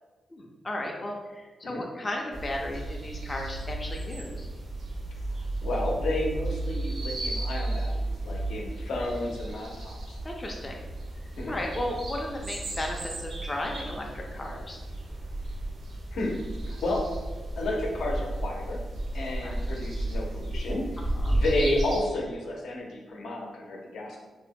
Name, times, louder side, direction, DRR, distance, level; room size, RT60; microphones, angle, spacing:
voice 1, 0.3-4.5 10.2-10.8 11.5-14.8 19.4-19.7 21.0-21.4, left 1 dB, 20° left, 0 dB, 0.4 m, -35 dB
sound 1, 2.3-22.0, right 1 dB, 60° right, 0.5 m, -33 dB
voice 2, 5.6-10.2 11.4-11.6 16.1-16.4 16.7-17.0 17.6-18.8 19.1-20.8 21.3-24.2, left 1 dB, 85° left, -1 dB, 0.6 m, -31 dB
2.6 x 2.1 x 3.6 m, 1.3 s
wide cardioid pair, 145°, 0 cm